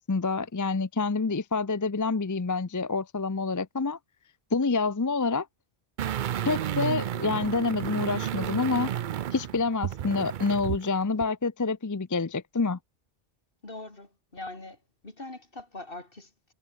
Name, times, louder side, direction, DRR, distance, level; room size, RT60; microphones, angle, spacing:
voice 1, 0.0-4.0 4.5-5.5 6.4-8.9 9.3-12.8, left 4 dB, 25° left, 0.5 m, -27 dB
sound 1, 6.0-10.9 11.2-11.3, right 10 dB, 60° right, 0.6 m, -32 dB
voice 2, 13.6-14.8 15.0-16.3, left 2 dB, 60° left, 4.0 m, -42 dB
omnidirectional pair, 1.0 m